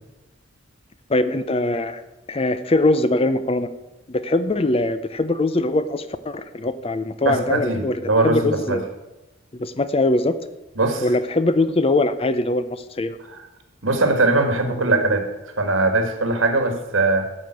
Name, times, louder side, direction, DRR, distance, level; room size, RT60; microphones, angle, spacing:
voice 1, 1.1-2.0 2.3-3.7 4.1-8.8 9.5-10.4 11.0-13.2 16.6-16.7, left 2 dB, 30° left, 12 dB, 0.6 m, -22 dB
voice 2, 7.2-8.8 10.8-11.0 13.8-15.2 15.6-17.3, right 2 dB, 90° right, 6 dB, 1.7 m, -20 dB
12.5 x 5.1 x 7.8 m, 1.0 s
head